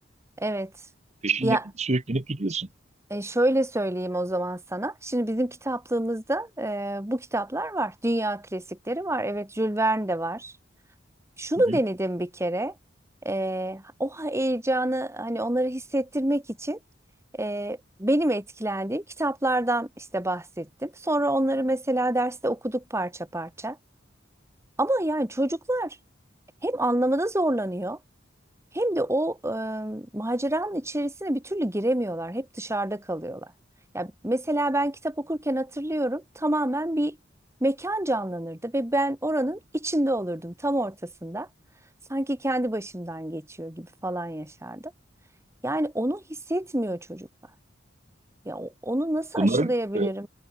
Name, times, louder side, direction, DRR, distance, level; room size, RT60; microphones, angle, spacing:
voice 1, 0.4-0.7 1.4-1.6 3.1-10.5 11.4-12.7 13.2-16.8 17.3-23.8 24.8-26.0 26.6-28.0 28.7-33.5 33.9-37.2 37.6-41.5 42.1-44.8 45.6-46.2 46.5-47.3 48.5-50.3, right 1 dB, 15° right, 2.5 m, -27 dB
voice 2, 1.2-2.7 11.7-11.8 49.4-50.1, right 2 dB, 35° right, 1.1 m, -26 dB
head